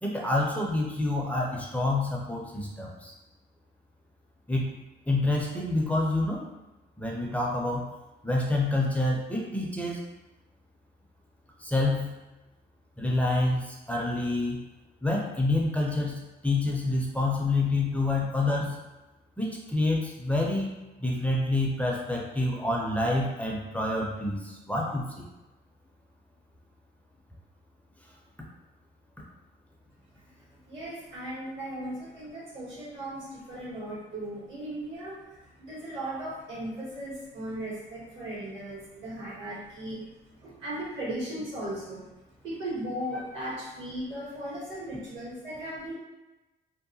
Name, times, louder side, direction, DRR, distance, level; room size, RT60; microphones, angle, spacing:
voice 1, 0.0-3.1 4.5-4.7 5.1-6.4 7.0-7.9 8.2-10.0 11.6-12.1 13.0-14.6 15.0-16.1 16.4-18.8 19.4-25.2 43.1-43.2, left 2 dB, 5° left, -3 dB, 0.5 m, -27 dB
voice 2, 30.7-40.0 40.4-42.0 42.4-45.9, right 1 dB, 75° right, -7 dB, 1.4 m, -37 dB
2.7 x 2.1 x 2.7 m, 1.1 s
cardioid pair, 90°, 20 cm